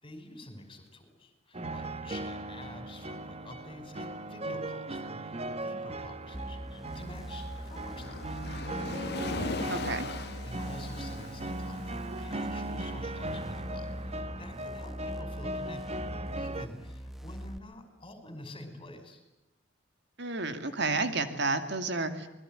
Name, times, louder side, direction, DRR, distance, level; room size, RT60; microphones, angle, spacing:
voice 1, 0.0-8.4 10.4-16.0 16.4-19.2, left 1 dB, 25° left, 8 dB, 5.6 m, -48 dB
sound 1, 1.5-16.7, right 2 dB, 35° right, 1.3 m, -38 dB
sound 2, 6.3-17.6, equal, ahead, 1.1 m, -42 dB
Waves surf, 6.9-14.0, left 3 dB, 60° left, 1.2 m, -41 dB
voice 2, 9.7-10.1 20.2-22.3, right 3 dB, 65° right, 9 dB, 2.4 m, -31 dB
27.0 x 21.0 x 9.1 m, 0.94 s
head